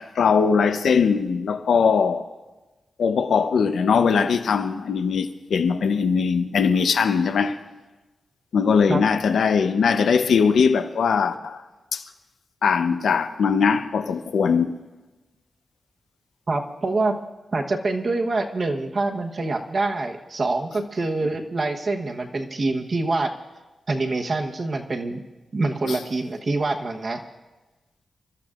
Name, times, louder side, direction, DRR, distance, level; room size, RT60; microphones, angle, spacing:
voice 1, 0.0-2.3 3.0-7.6 8.5-11.6 11.9-12.0 12.6-14.8 25.8-26.0, left 6 dB, 85° left, 0.7 m, -20 dB
voice 2, 16.5-17.2 17.5-23.3 23.9-25.2 25.5-27.2, right 3 dB, 40° right, 1.1 m, -25 dB
29.0 x 14.0 x 2.5 m
wide cardioid pair, 170°, 0 cm